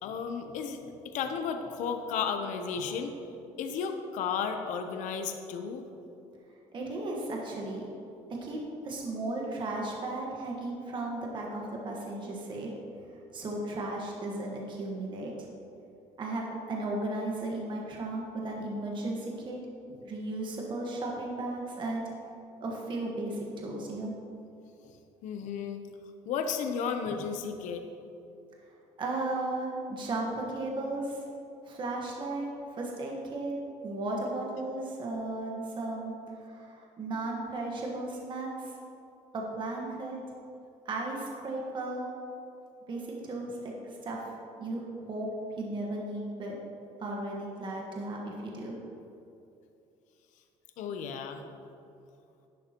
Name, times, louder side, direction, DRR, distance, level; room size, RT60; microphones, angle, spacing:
voice 1, 0.0-3.1 3.6-5.8 25.2-25.8 26.3-27.8 50.8-51.4, left 6 dB, 75° left, 6 dB, 0.8 m, -33 dB
voice 2, 6.7-7.9 8.4-8.6 8.8-12.7 13.3-15.5 16.2-19.6 20.0-22.0 22.6-24.1 29.0-31.2 31.6-33.6 33.8-38.7 39.3-40.2 40.8-42.1 42.9-43.7 44.0-44.3 44.6-45.3 45.6-46.6 47.0-48.8, right 2 dB, 40° right, -2 dB, 1.4 m, -35 dB
11.0 x 10.5 x 3.0 m, 2.7 s
cardioid pair, 135°, 13 cm